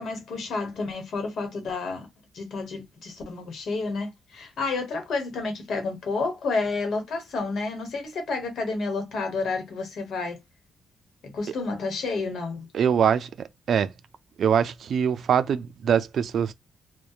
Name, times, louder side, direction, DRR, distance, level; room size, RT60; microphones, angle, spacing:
voice 1, 0.0-2.1 2.3-10.4 11.2-12.7, left 3 dB, 70° left, 1.0 m, -30 dB
voice 2, 12.7-13.3 13.7-13.9 14.4-16.5, right 8 dB, 65° right, 0.3 m, -23 dB
2.8 x 2.1 x 2.3 m
cardioid pair, 90°, 0 cm